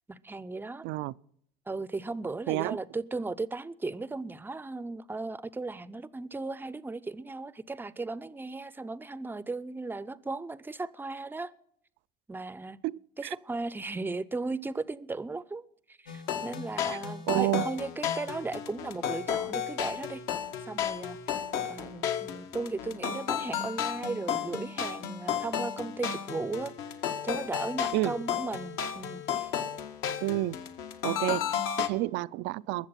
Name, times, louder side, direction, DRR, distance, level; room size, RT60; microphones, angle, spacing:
voice 1, 0.1-0.9 1.7-11.5 12.3-12.8 13.2-15.6 16.0-20.2 20.7-21.4 21.7-26.7 27.2-29.5, right 3 dB, 10° right, 0.6 m, -36 dB
voice 2, 0.8-1.1 2.5-2.8 12.8-13.3 17.3-17.7 27.9-28.2 30.2-30.6 31.0-32.9, right 18 dB, 60° right, 0.5 m, -30 dB
sound 1, 16.1-31.9, left 8 dB, 70° left, 1.8 m, -33 dB
21.5 x 7.3 x 5.8 m
supercardioid pair, 100°, 21 cm